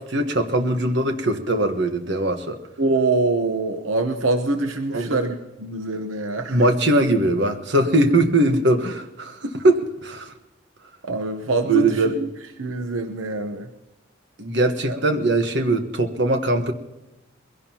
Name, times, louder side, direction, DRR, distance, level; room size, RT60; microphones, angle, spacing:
voice 1, 0.0-2.6 4.9-5.2 6.5-10.3 11.6-12.1 14.4-16.7, right 2 dB, 60° right, 6 dB, 1.4 m, -21 dB
voice 2, 2.8-6.6 11.1-12.3 12.6-13.7 14.8-15.0, right 2 dB, 80° right, 7 dB, 1.0 m, -24 dB
22.0 x 16.5 x 3.0 m, 1.0 s
head